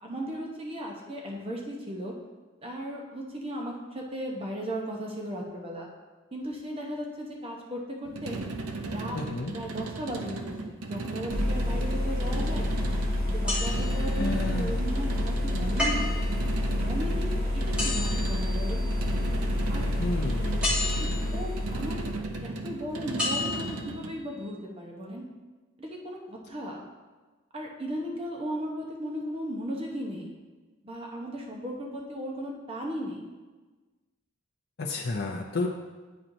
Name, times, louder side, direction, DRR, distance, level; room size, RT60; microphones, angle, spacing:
voice 1, 0.0-2.1 2.6-5.9 6.3-8.4 8.9-9.2 9.5-12.7 13.3-16.2 16.8-18.8 19.7-19.9 21.0-22.0 22.4-25.2 25.8-26.8 27.5-30.3 30.8-33.2, equal, 25° right, -1 dB, 0.8 m, -36 dB
sound 1, 8.0-24.2, right 2 dB, 90° right, 0.6 m, -36 dB
voice 2, 9.2-9.5 14.2-14.7 20.0-20.8 34.8-35.7, left 2 dB, 50° left, 0 dB, 0.5 m, -31 dB
sound 2, 11.3-22.2, left 1 dB, 45° right, 1.4 m, -29 dB
sound 3, 13.5-14.5 15.8-16.4 17.8-19.1 20.6-21.4 23.2-23.9 24.5-24.6, left 2 dB, 5° right, 1.3 m, -32 dB
10.5 x 4.3 x 2.6 m, 1.3 s
head